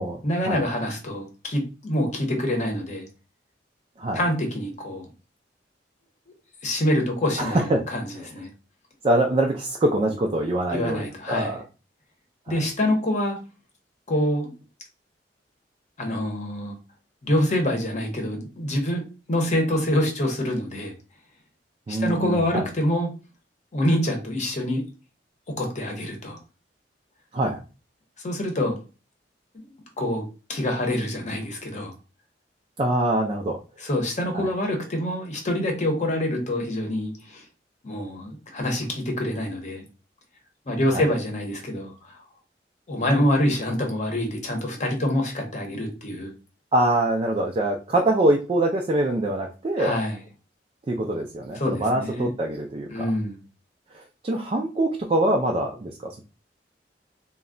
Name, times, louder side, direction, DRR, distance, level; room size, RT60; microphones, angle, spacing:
voice 1, 0.2-3.1 4.1-5.1 6.6-8.5 10.7-11.6 12.5-13.4 14.1-14.5 16.0-16.8 17.2-19.0 19.3-20.9 21.9-23.1 23.7-24.8 25.6-26.4 28.2-28.8 29.5-29.6 30.0-30.2 30.5-31.9 33.8-37.4 37.8-39.8 40.7-42.2 42.9-46.3 49.8-50.2 51.5-52.3 52.9-53.4, left 1 dB, 45° left, 2 dB, 0.8 m, -26 dB
voice 2, 7.4-7.8 9.0-11.6 12.5-12.6 21.9-22.7 27.3-27.6 32.8-33.6 34.3-34.5 40.9-41.0 46.7-50.0 50.9-53.1 53.9-56.2, right 1 dB, 30° right, 1 dB, 0.3 m, -24 dB
2.3 x 2.1 x 3.6 m, 0.32 s
head